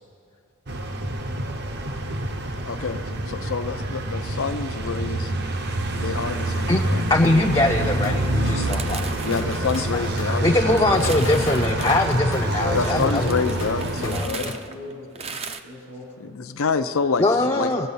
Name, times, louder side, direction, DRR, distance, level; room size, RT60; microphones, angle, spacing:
sound 1, 0.7-14.3, right 2 dB, 50° right, 0.8 m, -27 dB
voice 1, 2.7-5.3 5.9-7.0 9.2-11.1 12.8-14.4 16.2-17.3 17.5-17.7, left 5 dB, 75° left, 10 dB, 0.5 m, -27 dB
voice 2, 7.1-9.3 9.8-13.4 14.0-14.3 17.2-17.9, left 2 dB, 20° left, 0 dB, 0.5 m, -22 dB
sound 2, 8.0-14.7, left 2 dB, 60° left, 1.0 m, -35 dB
sound 3, 8.6-10.4 10.8-12.2 12.7-15.6, right 5 dB, 30° right, 0.5 m, -37 dB
voice 3, 12.4-15.2 15.6-16.3, left 1 dB, 80° right, -4 dB, 3.4 m, -34 dB
23.0 x 8.3 x 5.5 m, 2.6 s
head